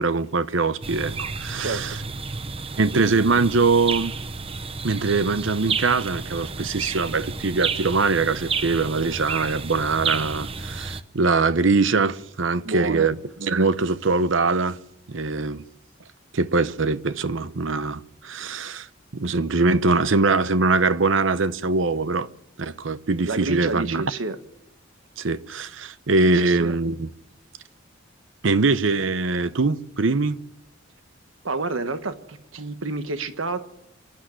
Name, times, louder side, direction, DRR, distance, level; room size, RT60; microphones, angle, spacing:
voice 1, 0.0-2.0 2.8-4.1 4.8-14.8 15.1-15.6 16.3-18.9 19.1-22.3 22.6-24.0 25.2-27.1 28.4-30.4, right 3 dB, 75° right, 0.8 m, -22 dB
sound 1, 0.8-11.0, right 5 dB, 30° right, 0.7 m, -31 dB
voice 2, 12.6-13.1 23.3-24.4 26.4-26.8 31.4-33.6, right 3 dB, 90° right, 1.3 m, -29 dB
25.0 x 11.5 x 10.0 m
head